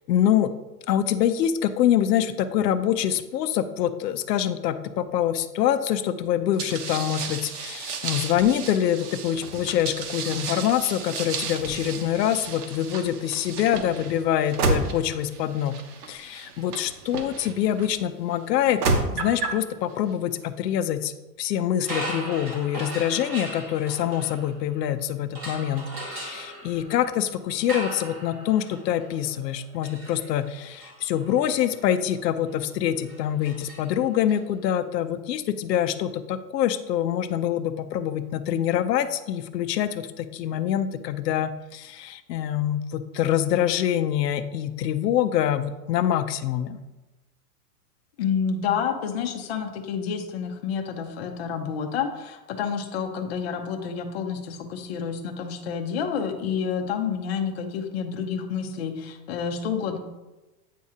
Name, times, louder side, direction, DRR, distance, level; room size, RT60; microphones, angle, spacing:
voice 1, 0.1-0.5 0.9-15.8 16.1-18.8 19.1-21.1 21.4-46.8, left 10 dB, 80° left, 10 dB, 0.6 m, -25 dB
sound 1, 6.6-17.9 18.5-19.6, right 4 dB, 70° right, 1.0 m, -31 dB
sound 2, 21.8-24.9 25.3-34.4, right 1 dB, 15° right, 0.7 m, -39 dB
voice 2, 48.2-60.0, left 7 dB, 40° left, 5 dB, 0.6 m, -29 dB
8.4 x 2.8 x 4.8 m, 1.1 s
supercardioid pair, 170°, 49 cm